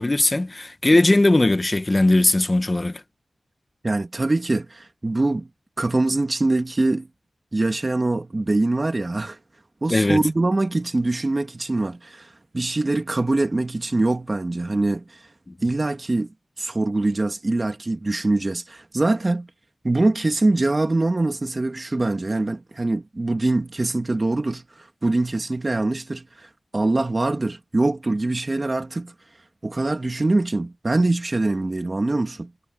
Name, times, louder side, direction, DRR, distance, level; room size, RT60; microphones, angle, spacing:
voice 1, 0.0-3.0 9.9-10.2, left 2 dB, 30° left, 1.2 m, -19 dB
voice 2, 3.8-5.5 5.8-7.1 7.5-9.4 9.8-15.2 15.6-16.3 16.6-19.5 19.8-29.1 29.6-32.5, right 2 dB, 35° right, 2.1 m, -23 dB
wide cardioid pair, 70°, 0 cm